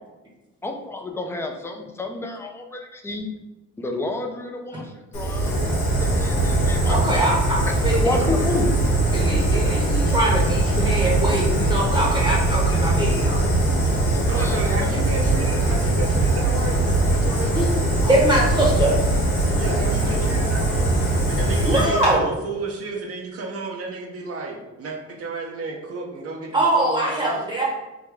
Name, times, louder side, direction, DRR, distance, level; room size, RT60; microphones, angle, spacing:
voice 1, 0.6-3.3 3.8-5.6 6.0-7.3 7.9-8.8 14.1-15.2 15.7-15.8, left 2 dB, 10° left, 3 dB, 0.4 m, -30 dB
Fire, 5.1-22.1, right 2 dB, 85° left, 1.2 m, -21 dB
voice 2, 6.9-8.0 9.1-13.4 17.5-17.6 18.0-19.0 21.7-22.3 26.5-27.6, right 1 dB, 15° right, -4 dB, 0.9 m, -22 dB
voice 3, 14.3-17.7 19.5-20.9 21.3-27.4, right 3 dB, 50° right, 0 dB, 0.6 m, -32 dB
3.5 x 2.2 x 3.3 m, 1.1 s
cardioid pair, 90°, 30 cm